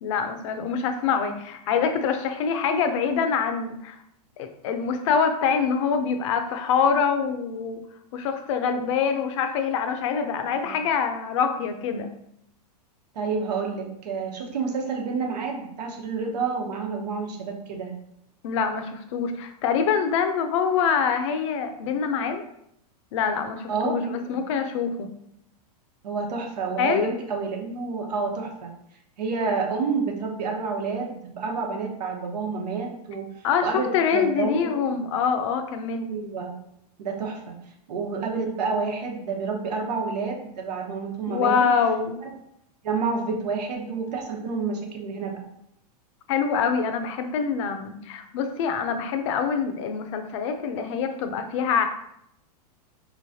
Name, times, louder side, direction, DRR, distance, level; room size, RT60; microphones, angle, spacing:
voice 1, 0.0-4.0 4.4-7.8 8.1-12.1 18.4-22.4 23.1-25.1 26.8-27.1 33.4-36.1 41.3-42.2 46.3-51.8, left 6 dB, 50° left, 7 dB, 0.5 m, -25 dB
voice 2, 13.1-17.9 23.7-24.4 26.0-28.7 29.2-33.2 33.6-34.7 36.0-36.5 37.0-37.5 37.9-41.5 42.2-42.3 42.8-45.4, right 4 dB, 85° right, 1 dB, 1.2 m, -29 dB
4.8 x 3.1 x 2.7 m, 0.76 s
supercardioid pair, 155°, 20 cm